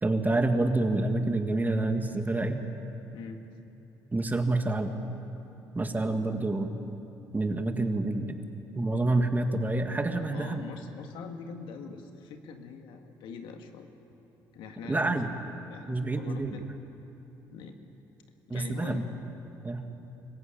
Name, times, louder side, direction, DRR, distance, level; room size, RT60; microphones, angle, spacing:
voice 1, 0.0-2.6 4.1-4.9 5.7-6.7 7.3-8.4 8.7-10.6 14.9-15.3 15.9-16.6 18.5-19.0 19.6-19.8, right 2 dB, 20° right, 6 dB, 1.9 m, -27 dB
voice 2, 3.1-3.5 10.3-13.9 14.5-15.2 15.7-16.7 17.5-17.8 18.5-19.1, left 6 dB, 80° left, 5 dB, 1.8 m, -43 dB
25.5 x 15.0 x 8.9 m, 3.0 s
supercardioid pair, 75°, 8 cm